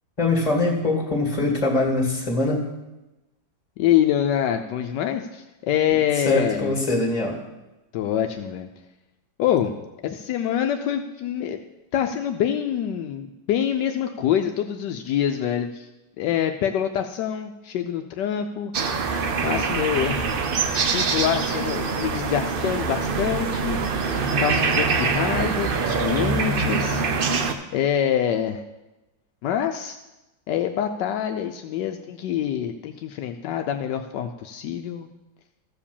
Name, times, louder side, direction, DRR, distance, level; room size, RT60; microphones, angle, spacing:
voice 1, 0.2-2.6 6.3-7.4, left 2 dB, 20° left, 0 dB, 2.2 m, -22 dB
voice 2, 3.8-6.7 7.9-8.7 9.4-11.6 11.9-15.9 16.2-18.7 19.4-20.3 20.9-23.8 24.4-27.0 27.7-28.6 29.4-30.0 30.5-35.1, left 10 dB, 80° left, 6 dB, 1.2 m, -25 dB
sound 1, 18.7-27.5, right 4 dB, 65° right, 0.5 m, -24 dB
14.0 x 4.9 x 7.1 m, 1.0 s
omnidirectional pair, 1.9 m